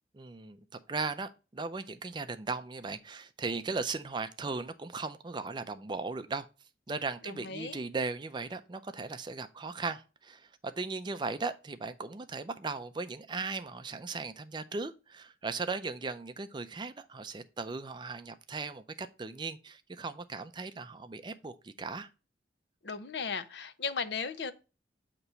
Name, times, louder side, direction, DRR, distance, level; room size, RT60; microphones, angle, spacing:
voice 1, 0.2-0.6 0.9-6.5 6.9-22.1, right 4 dB, 25° right, 0.4 m, -37 dB
voice 2, 7.2-7.8 22.8-24.5, left 5 dB, 65° left, 0.6 m, -36 dB
8.0 x 3.0 x 5.5 m
head